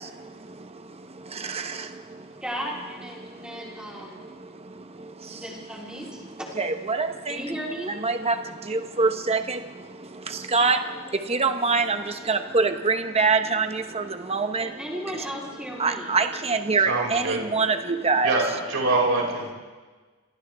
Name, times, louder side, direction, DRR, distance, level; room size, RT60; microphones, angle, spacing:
voice 1, 2.4-4.2 5.4-6.2 7.3-7.9 14.6-16.1, equal, 5° right, -4 dB, 3.8 m, -35 dB
voice 2, 6.6-7.3 8.0-8.3 8.7-9.6 10.5-10.8 11.3-12.0 12.3-14.0 14.3-14.7 15.8-18.3, right 4 dB, 25° right, 7 dB, 1.0 m, -23 dB
voice 3, 16.9-17.4 18.2-19.5, right 3 dB, 65° right, -1 dB, 5.7 m, -24 dB
29.0 x 27.0 x 3.5 m, 1.4 s
head